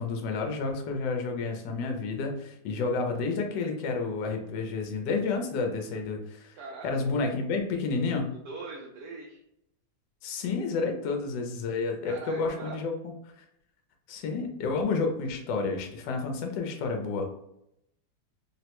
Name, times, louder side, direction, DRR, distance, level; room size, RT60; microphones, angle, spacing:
voice 1, 0.0-6.6 6.8-8.3 10.2-13.1 14.1-17.3, left 4 dB, 75° left, 3 dB, 1.2 m, -30 dB
voice 2, 6.6-7.2 8.4-9.4 12.0-12.8, right 3 dB, 75° right, -1 dB, 1.1 m, -42 dB
3.5 x 2.1 x 2.9 m, 0.80 s
omnidirectional pair, 2.0 m